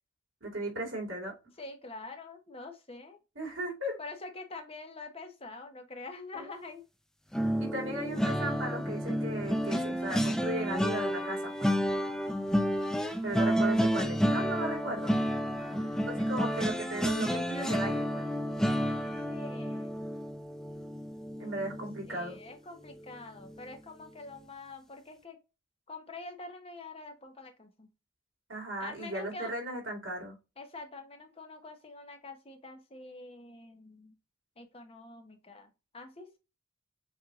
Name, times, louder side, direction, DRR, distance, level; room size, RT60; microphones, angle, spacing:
voice 1, 0.4-1.3 3.4-4.0 6.4-6.5 7.6-11.7 13.2-15.2 16.1-18.3 21.4-22.4 28.5-30.3, right 1 dB, 70° right, 2.7 m, -36 dB
voice 2, 1.6-3.2 4.0-6.8 13.4-13.6 15.5-16.1 19.3-20.1 22.0-25.4 25.9-27.9 28.8-29.5 30.6-34.2 34.6-36.4, left 3 dB, 30° left, 1.1 m, -46 dB
sound 1, 7.3-22.5 22.9-23.1 23.4-23.6, equal, 5° left, 0.4 m, -31 dB
7.5 x 2.8 x 2.5 m
head